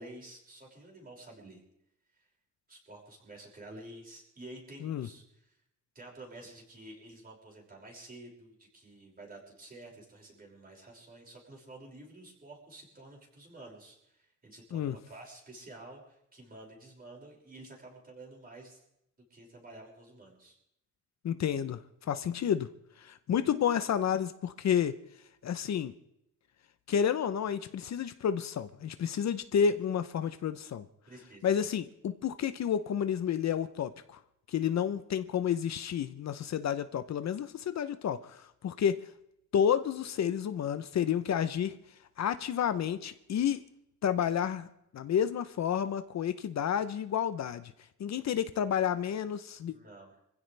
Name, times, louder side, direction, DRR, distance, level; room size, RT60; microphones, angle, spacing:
voice 1, 0.0-1.6 2.2-2.3 2.7-5.5 5.9-18.8 19.3-20.6 31.1-31.6 49.7-50.2, right 2 dB, 30° right, -2 dB, 5.9 m, -50 dB
voice 2, 21.2-22.7 23.0-25.0 25.4-25.9 26.9-30.9 31.4-34.2 34.5-39.1 39.5-41.8 42.2-43.6 44.0-44.7 44.9-47.7 48.0-49.7, left 8 dB, 60° left, 11 dB, 0.8 m, -30 dB
26.0 x 16.0 x 3.4 m, 0.80 s
wide cardioid pair, 145°, 31 cm